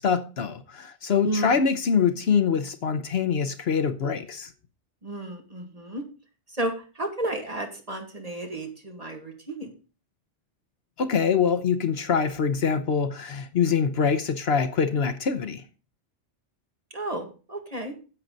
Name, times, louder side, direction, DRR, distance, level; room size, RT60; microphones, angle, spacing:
voice 1, 0.0-4.5 11.0-15.6, left 6 dB, 65° left, 1.0 m, -24 dB
voice 2, 1.2-1.6 5.0-6.0 6.5-9.7 16.9-17.9, right 1 dB, 35° right, 2.1 m, -32 dB
10.5 x 7.6 x 3.9 m
omnidirectional pair, 1.2 m